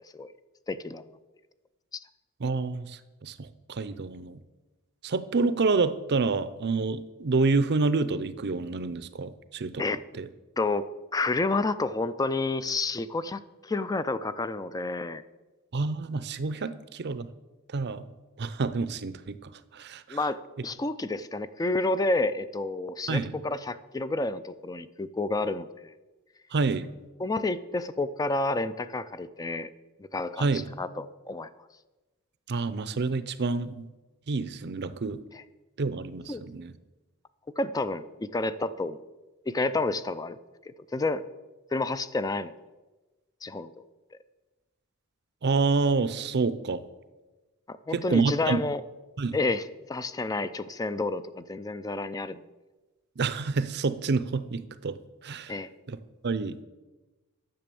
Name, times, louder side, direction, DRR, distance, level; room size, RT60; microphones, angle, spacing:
voice 1, 0.7-1.0 1.9-2.0 9.8-10.0 10.6-15.2 20.1-25.9 27.2-29.7 30.1-31.5 35.3-35.4 36.3-36.4 37.6-39.0 39.5-40.4 40.7-41.2 41.7-42.5 43.4-43.8 47.7-48.8 49.3-52.4 55.5-55.7, left 2 dB, 15° left, 14 dB, 0.4 m, -30 dB
voice 2, 2.4-4.4 5.0-9.8 10.2-10.3 15.7-17.3 17.7-18.1 18.4-20.2 23.1-23.3 26.5-26.9 30.4-30.7 32.5-33.9 34.3-35.2 35.8-36.7 45.4-46.8 47.9-48.6 49.2-49.4 53.2-55.0 55.2-55.5 55.9-56.0 56.2-56.6, right 4 dB, 50° right, 14 dB, 0.6 m, -28 dB
10.5 x 6.9 x 6.9 m, 1.2 s
head